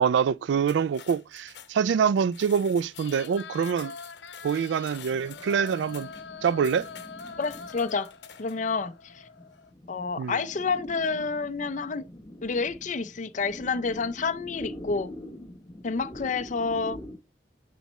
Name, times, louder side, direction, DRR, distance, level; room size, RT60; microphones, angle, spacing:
voice 1, 0.0-3.9 4.4-6.1 6.4-6.9 10.2-10.4, right 7 dB, 85° right, 0.3 m, -25 dB
sound 1, 0.6-8.7, left 9 dB, 70° left, 1.0 m, -49 dB
sound 2, 2.9-9.7, left 5 dB, 85° left, 0.6 m, -44 dB
sound 3, 4.9-17.2, left 1 dB, 25° left, 0.9 m, -45 dB
voice 2, 7.4-8.1 8.4-9.2 9.9-12.1 12.4-15.1 15.8-17.0, left 4 dB, 45° left, 0.5 m, -29 dB
9.3 x 4.1 x 3.1 m
head